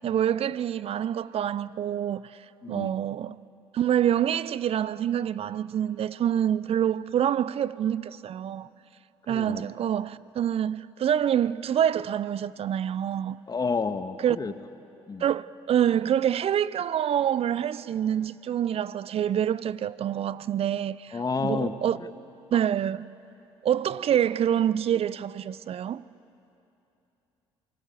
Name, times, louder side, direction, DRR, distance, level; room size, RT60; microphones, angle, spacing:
voice 1, 0.0-2.3 2.7-3.4 3.7-8.7 9.3-13.4 14.2-14.4 15.2-22.0 22.5-23.1 23.6-26.0, right 10 dB, 45° right, 0.6 m, -26 dB
voice 2, 2.6-3.0 9.3-9.8 13.5-14.5 15.1-15.3 21.1-21.7 22.0-22.1, left 4 dB, 30° left, 1.5 m, -30 dB
28.5 x 20.0 x 8.4 m
hypercardioid pair, 50°, 14 cm